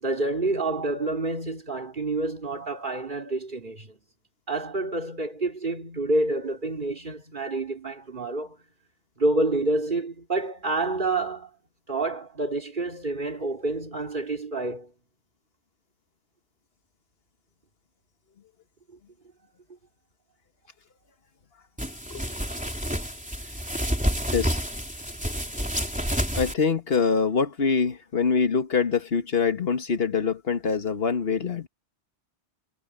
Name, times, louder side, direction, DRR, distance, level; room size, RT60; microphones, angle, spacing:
voice 1, 0.0-4.0 4.5-8.6 9.2-11.5 11.9-14.9, right 2 dB, 45° right, 3.0 m, -28 dB
sound 1, 21.8-26.5, equal, 5° right, 3.5 m, -29 dB
voice 2, 26.4-31.7, left 5 dB, 60° left, 1.7 m, -24 dB
omnidirectional pair, 1.1 m